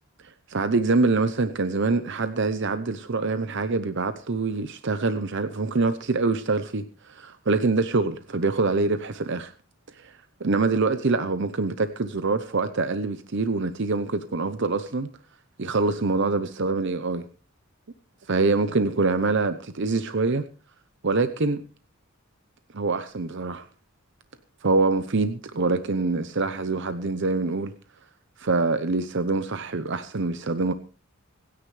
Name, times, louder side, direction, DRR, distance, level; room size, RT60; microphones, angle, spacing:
voice 1, 0.2-9.5 10.0-15.1 15.6-17.3 18.3-20.4 21.0-21.6 22.7-23.7 24.6-27.7 28.4-30.7, right 3 dB, 60° right, 0.8 m, -25 dB
26.0 x 9.8 x 3.3 m
head